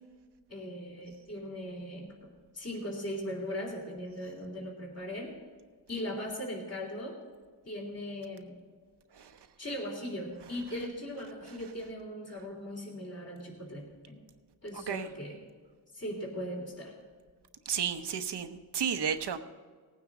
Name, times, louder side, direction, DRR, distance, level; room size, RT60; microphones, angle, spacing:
voice 1, 0.5-5.3 5.9-7.2 7.6-8.6 9.6-14.2 14.6-15.4 15.9-16.9, equal, 35° left, -1 dB, 3.3 m, -39 dB
voice 2, 17.7-19.4, right 7 dB, 70° right, 8 dB, 1.0 m, -32 dB
18.5 x 9.4 x 3.8 m, 1.5 s
wide cardioid pair, 100°, 42 cm